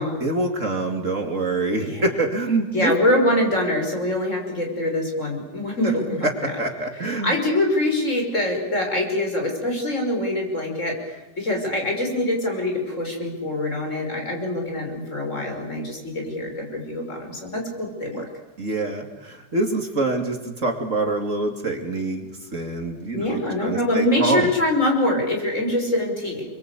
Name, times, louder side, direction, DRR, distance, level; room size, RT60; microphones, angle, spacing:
voice 1, 0.0-2.9 6.6-7.3 18.1-18.2 18.6-24.5, right 2 dB, 45° right, 4 dB, 3.0 m, -25 dB
voice 2, 2.7-6.5 7.0-18.3 23.1-26.5, left 1 dB, 45° left, 1 dB, 6.5 m, -24 dB
29.5 x 23.5 x 8.5 m, 1.0 s
omnidirectional pair, 1.8 m